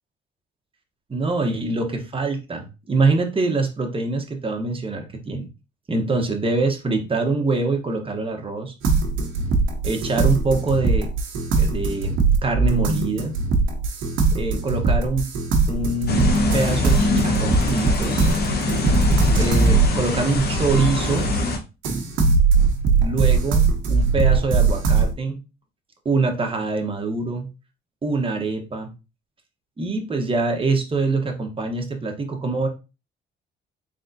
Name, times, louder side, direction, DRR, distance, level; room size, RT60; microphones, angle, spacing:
voice 1, 1.1-5.5 5.9-8.7 9.8-11.1 11.6-13.4 14.3-15.3 15.7-16.3 16.5-18.2 19.4-21.3 22.9-23.6 23.9-25.4 26.0-27.5 28.0-28.9 29.8-32.7, right 3 dB, 25° right, 4 dB, 1.0 m, -24 dB
sound 1, 8.8-21.4 21.8-25.1, right 4 dB, 80° right, 1.0 m, -21 dB
sound 2, 16.1-21.6, left 2 dB, 55° left, 1.0 m, -23 dB
3.9 x 3.5 x 2.6 m, 0.28 s
cardioid pair, 90°, 20 cm